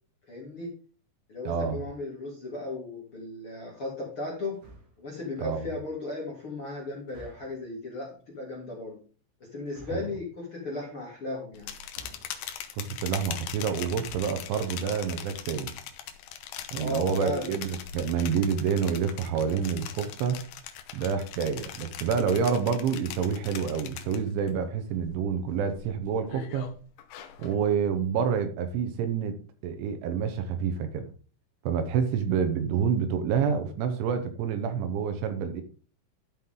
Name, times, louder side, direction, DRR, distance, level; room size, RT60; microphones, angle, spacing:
voice 1, 0.3-0.7 1.3-4.6 5.0-9.0 9.4-11.7 16.8-17.5, left 2 dB, 35° left, -3 dB, 2.4 m, -36 dB
voice 2, 1.5-1.8 5.4-5.6 9.9-10.0 12.7-15.7 16.7-20.4 20.9-26.7 27.4-29.3 29.6-31.1 31.7-35.6, right 7 dB, 75° right, 8 dB, 3.3 m, -28 dB
sound 1, 4.5-5.1 7.1-7.7 9.6-10.2 11.9-12.7 13.9-14.6, right 1 dB, 40° right, 2.2 m, -51 dB
sound 2, 11.5-24.5 24.9-25.3 25.7-27.6, left 10 dB, 80° left, 2.3 m, -41 dB
12.5 x 6.1 x 3.8 m, 0.40 s
omnidirectional pair, 5.7 m